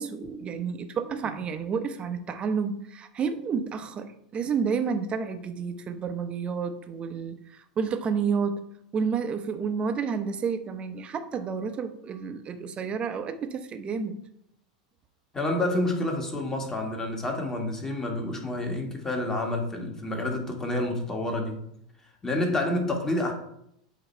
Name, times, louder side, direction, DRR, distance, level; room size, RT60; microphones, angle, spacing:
voice 1, 0.0-8.6 8.9-14.2, right 6 dB, 30° right, 8 dB, 0.7 m, -30 dB
voice 2, 15.3-21.6 22.2-23.3, left 1 dB, 15° left, 2 dB, 1.6 m, -28 dB
7.9 x 2.9 x 4.4 m, 0.74 s
hypercardioid pair, 95°, 4 cm